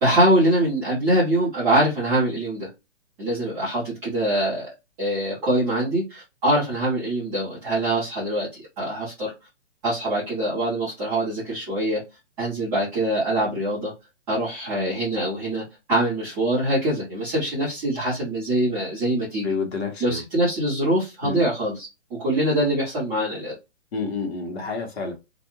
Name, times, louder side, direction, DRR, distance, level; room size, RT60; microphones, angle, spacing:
voice 1, 0.0-2.7 3.2-4.7 5.0-8.5 8.8-9.3 9.8-12.0 12.4-13.9 14.3-15.6 15.9-19.5 20.0-21.9 22.2-23.5, right 1 dB, 5° right, 0.5 m, -23 dB
voice 2, 19.4-20.2 21.2-21.4 23.9-25.1, left 4 dB, 55° left, 1.1 m, -29 dB
2.6 x 2.2 x 2.9 m
hypercardioid pair, 165°, 38 cm